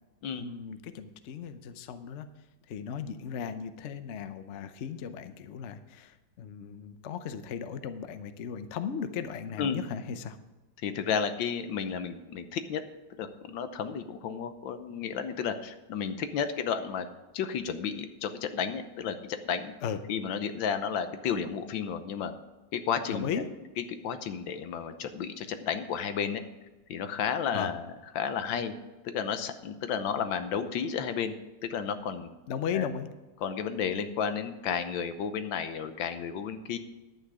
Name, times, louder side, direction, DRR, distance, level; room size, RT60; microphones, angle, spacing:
voice 1, 0.4-2.3 2.7-10.4 19.8-20.0 23.1-23.4 27.5-27.7 32.5-33.1, left 7 dB, 55° left, 10 dB, 0.8 m, -36 dB
voice 2, 10.8-12.8 13.2-17.1 17.3-19.7 20.1-22.3 22.7-23.3 24.0-26.4 26.9-27.8 28.1-28.7 29.0-31.3 31.6-32.4 32.7-32.9 33.4-36.8, left 7 dB, 85° left, 9 dB, 1.6 m, -32 dB
11.0 x 9.1 x 4.8 m, 1.1 s
omnidirectional pair, 2.0 m